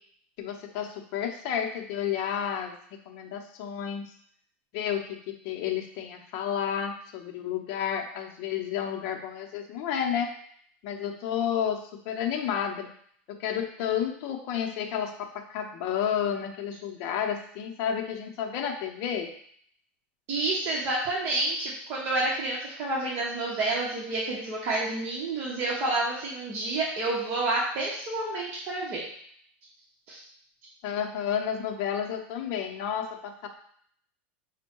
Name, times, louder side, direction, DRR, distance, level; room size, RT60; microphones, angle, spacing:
voice 1, 0.4-2.7 3.1-4.0 4.7-10.3 10.8-12.9 13.3-19.3 30.8-33.5, left 8 dB, 55° left, 3 dB, 0.7 m, -31 dB
voice 2, 20.3-29.0 30.1-30.2, right 2 dB, 40° right, -6 dB, 1.0 m, -29 dB
5.3 x 2.2 x 4.5 m, 0.63 s
supercardioid pair, 140°, 6 cm